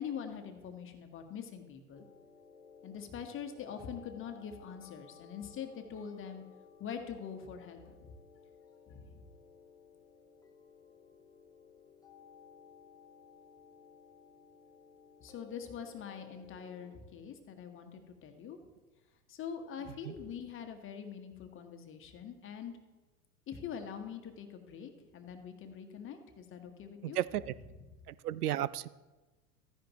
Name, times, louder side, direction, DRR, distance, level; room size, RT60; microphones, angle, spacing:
voice 1, 0.0-2.0 2.8-6.4 6.8-8.0 8.9-9.2 15.2-18.6 19.3-22.8 23.5-27.2, left 7 dB, 25° left, 6 dB, 1.3 m, -44 dB
sound 1, 1.9-17.0, left 6 dB, 10° left, 1.0 m, -58 dB
voice 2, 27.0-27.5 28.1-28.9, right 12 dB, 80° right, 19 dB, 0.5 m, -34 dB
13.5 x 10.0 x 3.0 m, 1.2 s
hypercardioid pair, 95°, 45 cm